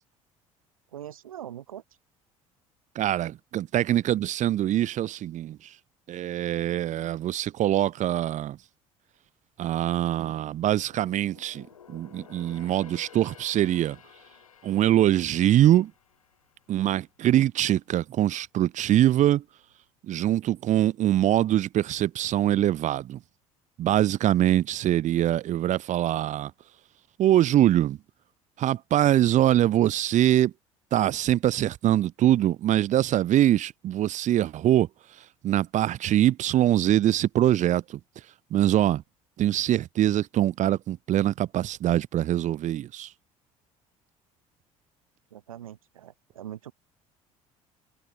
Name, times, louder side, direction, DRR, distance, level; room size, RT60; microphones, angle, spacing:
voice 1, 0.9-1.8 45.3-46.7, right 11 dB, 85° right, 2.0 m, -42 dB
voice 2, 3.0-5.6 6.1-8.6 9.6-14.0 14.6-15.9 16.7-19.4 20.1-23.2 23.8-26.5 27.2-28.0 28.6-30.5 30.9-34.9 35.4-38.0 38.5-39.0 39.4-43.1, right 12 dB, 45° right, 0.6 m, -23 dB
sound 1, 10.2-17.5 17.9-18.1 18.7-19.4 19.7-19.8, left 8 dB, 90° left, 6.7 m, -53 dB
hypercardioid pair, 60°, 17 cm